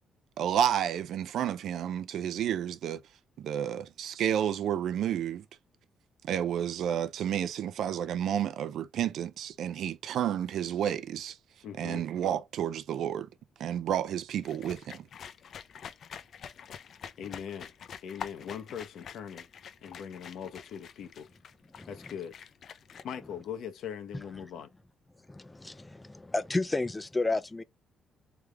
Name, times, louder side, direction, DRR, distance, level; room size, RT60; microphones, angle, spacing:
voice 1, 0.4-3.0 3.4-5.4 6.2-11.4 11.8-13.3 13.6-15.1, right 10 dB, 75° right, 0.5 m, -31 dB
voice 2, 11.6-12.0 17.2-17.7 18.0-19.5 19.8-21.3 21.9-22.3 23.0-24.7, left 8 dB, 75° left, 0.9 m, -40 dB
sound 1, 14.4-23.0, left 7 dB, 60° left, 0.6 m, -46 dB
voice 3, 25.3-27.6, left 2 dB, 15° left, 0.5 m, -31 dB
3.4 x 3.4 x 3.4 m
cardioid pair, 90°, 0 cm